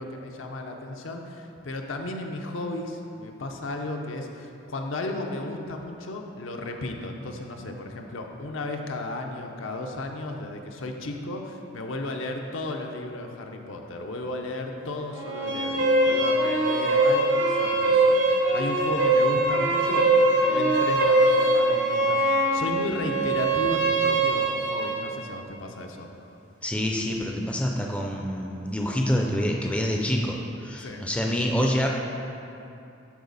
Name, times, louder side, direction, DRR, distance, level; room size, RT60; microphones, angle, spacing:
voice 1, 0.0-26.1 30.8-31.1, left 2 dB, 75° left, 3 dB, 0.7 m, -34 dB
sound 1, 15.1-25.1, right 2 dB, 80° right, 1.3 m, -22 dB
voice 2, 26.6-31.9, equal, 5° left, 0 dB, 0.4 m, -26 dB
12.0 x 4.2 x 4.0 m, 2.7 s
head